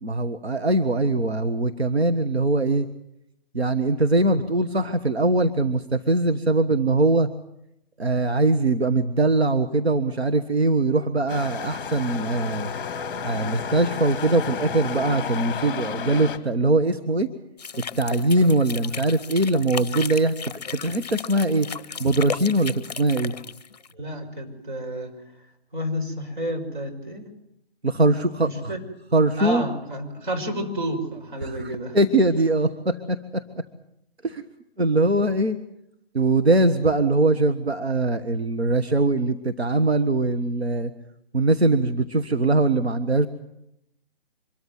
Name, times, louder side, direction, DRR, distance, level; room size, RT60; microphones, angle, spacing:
voice 1, 0.0-2.9 3.5-7.3 8.0-12.7 13.2-17.3 18.0-20.3 20.8-21.7 22.0-23.3 27.8-28.7 29.1-29.6 31.4-33.4 34.2-34.4 34.8-35.6 36.1-40.9 41.3-43.3, right 2 dB, 90° right, 8 dB, 1.5 m, -22 dB
sound 1, 11.3-16.4, left 7 dB, 20° left, 1.6 m, -32 dB
sound 2, 17.6-23.9, left 6 dB, 40° left, 0.8 m, -35 dB
voice 2, 23.9-25.2 25.7-27.3 28.4-28.8 29.4-32.0, equal, 50° right, 3 dB, 5.8 m, -30 dB
25.0 x 13.5 x 9.5 m, 0.81 s
figure-of-eight pair, 155°, 31 cm